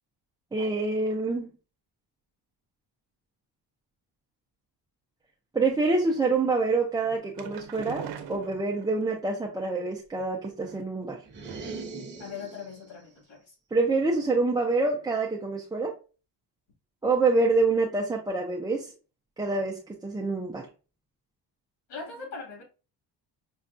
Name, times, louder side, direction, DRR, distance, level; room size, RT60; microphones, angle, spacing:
voice 1, 0.5-1.5 5.5-11.2 13.7-15.9 17.0-18.9 19.4-20.7, right 3 dB, 10° right, 0.4 m, -26 dB
sound 1, 7.0-9.1 10.1-11.0 11.5-11.9 12.2-12.3 12.6-12.7, right 9 dB, 70° right, 0.7 m, -41 dB
sound 2, 11.2-12.9, right 3 dB, 25° right, 0.8 m, -40 dB
voice 2, 12.2-13.5 21.9-22.6, left 5 dB, 80° left, 2.1 m, -41 dB
5.4 x 2.2 x 2.5 m
cardioid pair, 150°, 43 cm